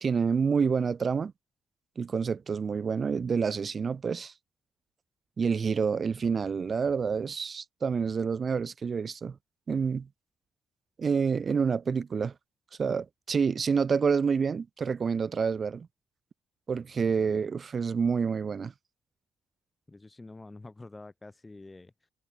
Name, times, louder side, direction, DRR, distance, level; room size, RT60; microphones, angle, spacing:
voice 1, 0.0-1.3 2.0-4.3 5.4-9.4 9.7-10.1 11.0-12.3 12.8-15.9 16.7-18.7, right 6 dB, 40° right, 0.5 m, -28 dB
voice 2, 19.9-22.1, left 2 dB, 20° left, 5.2 m, -48 dB
cardioid pair, 90°, 0 cm